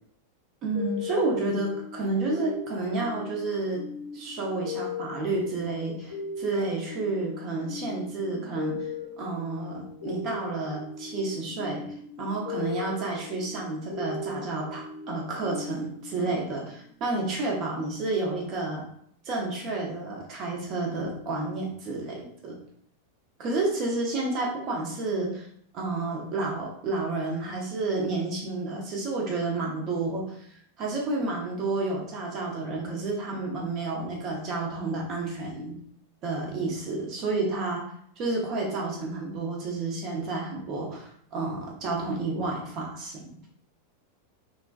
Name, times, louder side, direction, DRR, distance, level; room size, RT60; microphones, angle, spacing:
voice 1, 0.6-3.8 4.1-8.9 9.2-11.8 12.2-18.8 19.2-22.6 23.4-25.5 25.7-35.8 36.2-37.8 38.2-43.2, right 3 dB, 35° right, -1 dB, 0.8 m, -30 dB
sound 1, 0.7-17.1, left 4 dB, 75° left, 1.1 m, -39 dB
3.1 x 2.2 x 2.4 m, 0.67 s
figure-of-eight pair, 90°, 0 cm